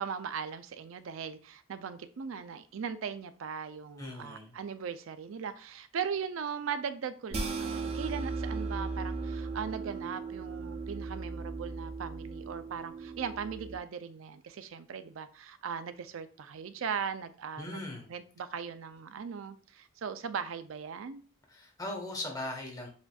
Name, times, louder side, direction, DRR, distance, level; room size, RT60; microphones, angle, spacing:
voice 1, 0.0-17.8 18.1-21.2, right 6 dB, 85° right, 0.4 m, -39 dB
voice 2, 4.0-4.5 17.6-18.1 21.5-22.9, left 1 dB, 20° left, 1.1 m, -39 dB
sound 1, 7.3-13.8, right 4 dB, 30° right, 0.5 m, -37 dB
7.1 x 2.6 x 2.3 m
head